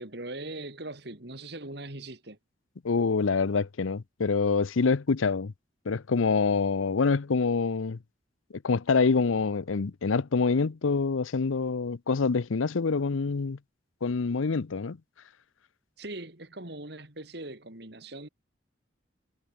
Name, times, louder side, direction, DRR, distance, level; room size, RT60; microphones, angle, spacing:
voice 1, 0.0-2.4 16.0-18.3, right 2 dB, 55° right, 2.8 m, -40 dB
voice 2, 2.8-5.5 5.9-8.0 8.5-13.6 14.0-15.0, left 4 dB, 90° left, 0.6 m, -26 dB
head